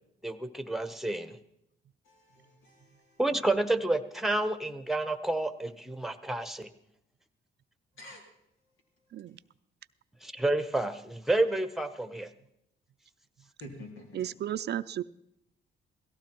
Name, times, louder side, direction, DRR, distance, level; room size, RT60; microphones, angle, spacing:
voice 1, 0.2-1.4 3.2-6.7 10.2-12.3, right 2 dB, ahead, 11 dB, 1.1 m, -29 dB
voice 2, 2.1-3.2 8.0-8.2 13.6-14.2, left 1 dB, 85° left, 1 dB, 3.9 m, -48 dB
voice 3, 14.1-15.0, right 11 dB, 55° right, 14 dB, 0.5 m, -34 dB
17.5 x 15.0 x 4.5 m, 0.78 s
cardioid pair, 90°, 20 cm